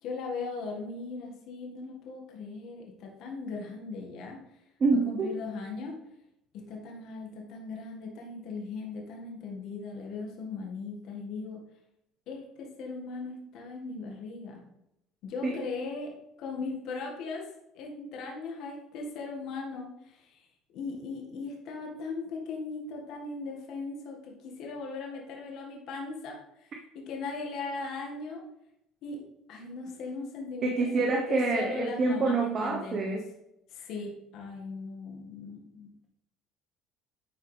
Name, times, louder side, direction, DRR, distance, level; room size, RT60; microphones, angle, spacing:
voice 1, 0.0-4.4 4.9-6.0 6.5-11.6 12.3-14.6 15.2-16.1 16.4-17.5 17.7-20.4 20.7-28.4 29.0-29.2 29.5-33.2 33.7-36.0, left 4 dB, 65° left, 0 dB, 1.9 m, -38 dB
voice 2, 4.8-5.3 15.4-15.6 30.6-33.3, right 3 dB, 45° right, 2 dB, 1.1 m, -27 dB
11.0 x 4.6 x 3.5 m, 0.83 s
supercardioid pair, 85°, 0 cm